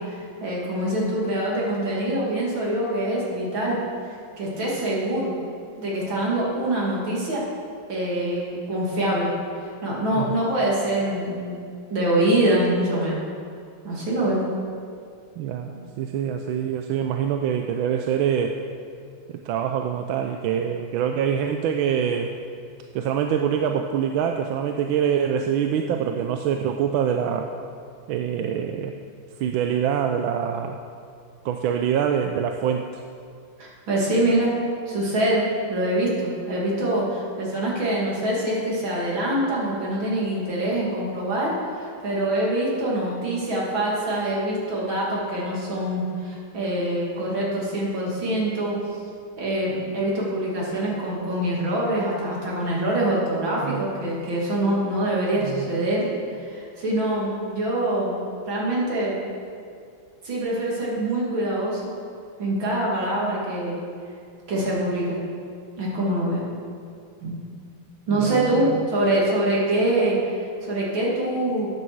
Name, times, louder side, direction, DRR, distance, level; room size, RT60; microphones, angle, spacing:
voice 1, 0.0-3.8 4.4-5.3 5.8-7.4 7.9-9.3 9.8-11.6 11.9-13.2 13.8-14.4 15.7-15.9 33.6-34.5 34.9-48.8 49.4-56.1 56.4-58.2 58.5-59.2 60.2-61.9 62.4-63.8 64.5-65.2 65.8-66.4 67.2-67.4 68.1-70.2 70.7-71.7, right 1 dB, 75° right, -5 dB, 3.4 m, -24 dB
voice 2, 15.4-18.6 19.3-22.3 22.9-27.5 28.1-29.0 29.4-30.8 31.4-32.9 53.6-53.8 55.4-55.7 68.1-68.8, right 8 dB, 90° right, 4 dB, 1.4 m, -25 dB
13.5 x 9.6 x 4.7 m, 2.2 s
omnidirectional pair, 2.2 m